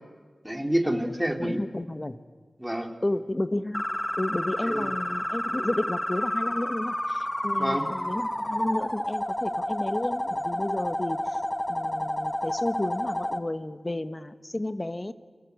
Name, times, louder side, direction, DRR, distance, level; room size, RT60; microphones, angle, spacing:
voice 1, 0.4-1.6 2.6-2.9 4.6-4.9 7.6-7.9, equal, 5° right, 4 dB, 3.2 m, -28 dB
voice 2, 1.4-2.2 3.0-3.8 4.2-11.4 11.7-15.1, left 1 dB, 30° left, 10 dB, 1.4 m, -32 dB
sound 1, 3.7-13.4, left 1 dB, 15° left, 1.4 m, -30 dB
29.5 x 25.0 x 8.2 m, 1.5 s
wide cardioid pair, 60°, 0 cm